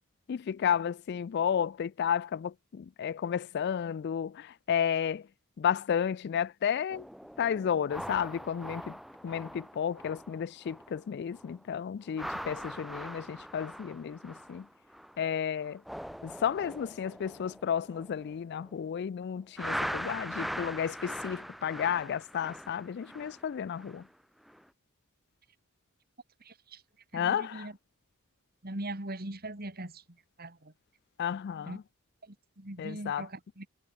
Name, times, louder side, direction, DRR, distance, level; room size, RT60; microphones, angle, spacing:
voice 1, 0.3-5.3 5.6-7.0 7.4-9.0 9.2-14.7 15.2-15.8 16.2-24.0 27.1-27.7 31.2-31.8 32.8-33.3, left 8 dB, 50° left, 0.3 m, -32 dB
sound 1, 6.9-11.1 11.3-11.6 12.0-15.3 15.6-18.9 19.6-24.1 24.5-24.7, equal, ahead, 0.7 m, -41 dB
voice 2, 26.4-26.8 27.1-27.7 28.6-30.0 30.4-30.7 31.7-31.8 32.2-33.7, right 1 dB, 45° right, 3.0 m, -41 dB
head